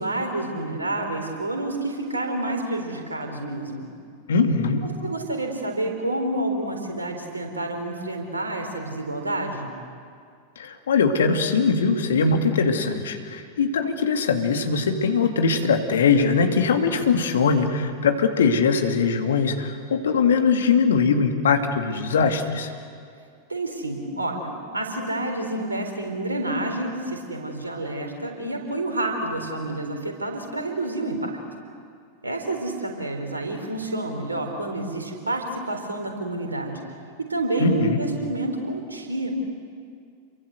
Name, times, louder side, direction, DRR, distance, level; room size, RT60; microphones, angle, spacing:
voice 1, 0.0-3.9 4.8-9.7 23.5-31.3 32.2-36.8 37.3-39.3, right 2 dB, 80° right, 4 dB, 4.1 m, -29 dB
voice 2, 4.3-4.8 10.6-22.7 37.6-38.0, left 5 dB, 65° left, 5 dB, 2.3 m, -21 dB
29.0 x 23.0 x 8.0 m, 2.2 s
figure-of-eight pair, 90°, 0 cm